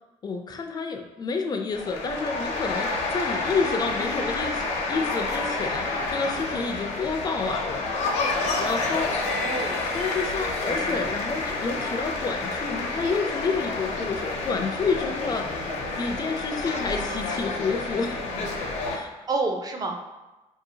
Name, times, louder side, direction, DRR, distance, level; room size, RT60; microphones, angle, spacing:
voice 1, 0.2-8.0 8.6-9.1 9.9-15.6 16.0-18.3 18.9-19.1, left 4 dB, 35° left, 5 dB, 0.4 m, -29 dB
sound 1, 1.7-19.0, left 3 dB, 70° left, 0.7 m, -29 dB
voice 2, 3.2-4.3 5.8-6.1 9.2-9.8 13.9-14.1 16.8-17.4 19.3-20.0, right 3 dB, 30° right, 3 dB, 0.5 m, -32 dB
4.5 x 2.8 x 2.7 m, 1.1 s
cardioid pair, 120°, 12 cm